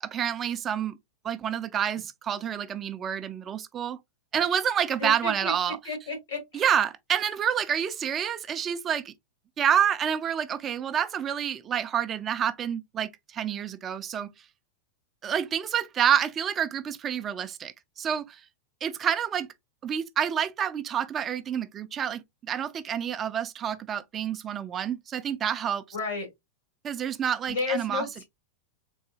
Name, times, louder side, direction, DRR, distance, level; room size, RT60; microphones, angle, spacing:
voice 1, 0.0-0.9 1.2-4.0 4.3-5.8 6.5-9.1 9.6-14.3 15.2-18.4 18.8-19.5 19.8-25.8 26.8-28.1, right 9 dB, 25° right, 0.3 m, -28 dB
voice 2, 5.0-5.5 5.8-6.6 25.9-26.3 27.5-28.2, left 3 dB, 90° left, 2.4 m, -32 dB
3.8 x 2.6 x 2.7 m
supercardioid pair, 150°, 0 cm